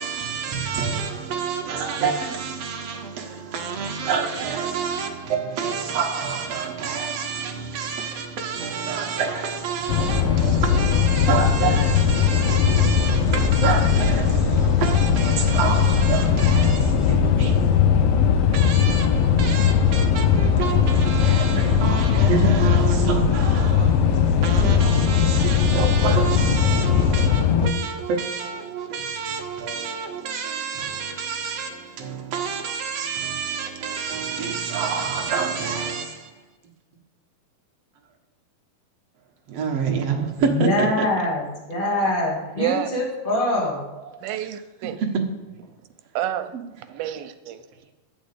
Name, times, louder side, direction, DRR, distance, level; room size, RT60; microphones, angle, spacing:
voice 1, 0.0-14.4 14.8-16.8 17.1-17.6 18.5-19.1 19.4-24.0 24.4-31.7 32.0-36.0 39.5-41.1, right 6 dB, 60° right, 1.7 m, -28 dB
sound 1, 9.9-27.7, left 7 dB, 80° left, 2.5 m, -19 dB
voice 2, 40.5-41.4 41.7-43.8, left 1 dB, 15° left, 2.2 m, -23 dB
voice 3, 42.6-42.9 44.2-45.0 46.2-46.5 46.9-47.6, right 11 dB, 85° right, 2.6 m, -28 dB
11.5 x 5.3 x 8.2 m
omnidirectional pair, 4.3 m